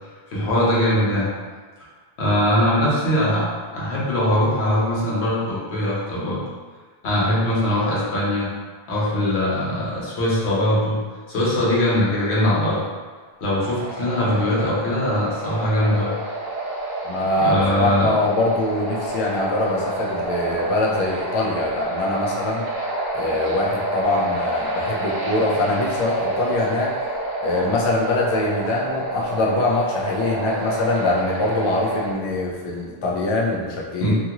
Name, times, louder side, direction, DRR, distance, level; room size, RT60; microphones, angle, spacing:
voice 1, 0.3-1.3 2.2-3.5 3.7-6.4 7.0-8.5 8.9-11.0 11.3-12.8 13.4-16.1 17.4-18.1 34.0-34.2, left 1 dB, 85° left, -7 dB, 1.1 m, -21 dB
sound 1, 13.6-32.1, right 2 dB, 70° right, 1.0 m, -28 dB
voice 2, 17.0-22.6 23.1-26.9 27.4-34.2, left 2 dB, 50° left, -3 dB, 0.3 m, -23 dB
2.7 x 2.4 x 2.8 m, 1.4 s
omnidirectional pair, 1.1 m